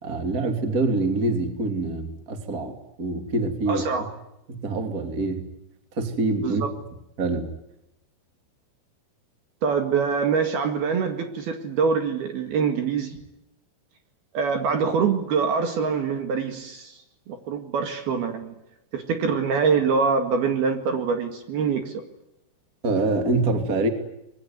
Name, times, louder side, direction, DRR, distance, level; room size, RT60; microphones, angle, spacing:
voice 1, 0.0-2.7 3.0-3.8 4.5-5.5 6.0-6.6 7.2-7.5 22.8-23.9, right 2 dB, 25° right, 6 dB, 2.4 m, -25 dB
voice 2, 3.7-4.1 6.4-6.6 9.6-13.2 14.3-17.0 17.3-18.6 18.9-21.9, right 5 dB, 55° right, 6 dB, 3.5 m, -24 dB
25.5 x 22.0 x 9.6 m, 0.85 s
omnidirectional pair, 5.8 m